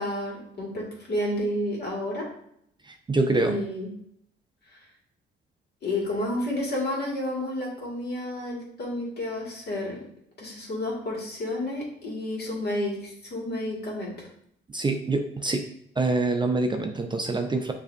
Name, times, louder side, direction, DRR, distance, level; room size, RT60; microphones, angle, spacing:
voice 1, 0.0-2.3 3.4-3.9 4.7-4.8 5.8-10.0 10.4-14.3, left 1 dB, 55° left, -3 dB, 1.8 m, -30 dB
voice 2, 2.9-3.6 14.7-15.7 16.0-17.7, right 3 dB, 25° right, 4 dB, 0.4 m, -25 dB
6.5 x 2.7 x 2.5 m, 0.70 s
cardioid pair, 90°, 20 cm